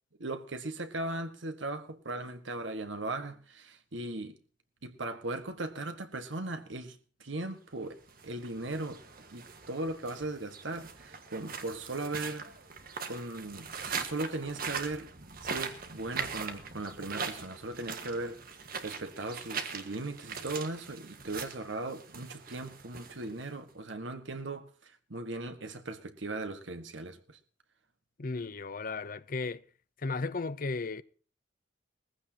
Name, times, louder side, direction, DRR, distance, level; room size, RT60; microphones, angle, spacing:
voice 1, 0.2-4.4 4.8-9.0 9.3-12.5 13.1-15.1 15.4-18.4 18.8-27.4, right 2 dB, 90° right, 1.7 m, -38 dB
sound 1, 8.0-23.7, right 5 dB, 50° right, 1.6 m, -41 dB
voice 2, 28.2-29.6 30.0-31.0, left 3 dB, 50° left, 0.7 m, -35 dB
20.0 x 15.0 x 2.9 m
head